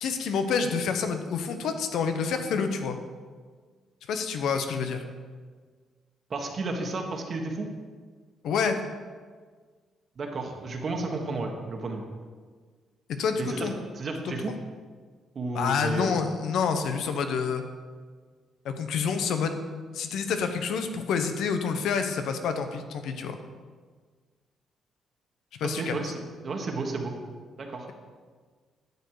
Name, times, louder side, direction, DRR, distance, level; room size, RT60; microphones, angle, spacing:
voice 1, 0.0-3.0 4.1-5.0 8.4-8.8 13.1-13.7 14.2-14.3 15.5-17.6 18.6-19.6 19.9-23.4 25.6-25.9, left 6 dB, 75° left, 7 dB, 0.9 m, -28 dB
voice 2, 6.3-7.7 10.2-12.0 13.4-13.7 13.9-14.6 15.3-16.2 25.6-27.1 27.6-27.9, right 3 dB, 45° right, 2 dB, 1.5 m, -32 dB
11.0 x 6.9 x 4.9 m, 1.6 s
cardioid pair, 90°, 0 cm